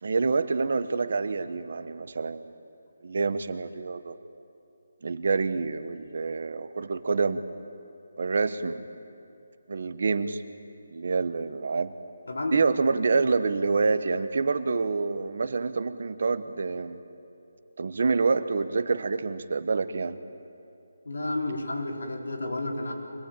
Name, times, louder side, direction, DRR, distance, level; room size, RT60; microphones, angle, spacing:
voice 1, 0.0-2.5 3.0-4.2 5.0-7.4 8.2-8.8 9.7-10.4 10.9-11.9 12.5-17.0 17.8-20.2, right 4 dB, 45° right, 11 dB, 1.0 m, -27 dB
voice 2, 12.3-12.6 21.1-22.9, left 2 dB, 80° left, 0 dB, 4.2 m, -31 dB
24.0 x 19.0 x 8.9 m, 2.7 s
hypercardioid pair, 175°, 0 cm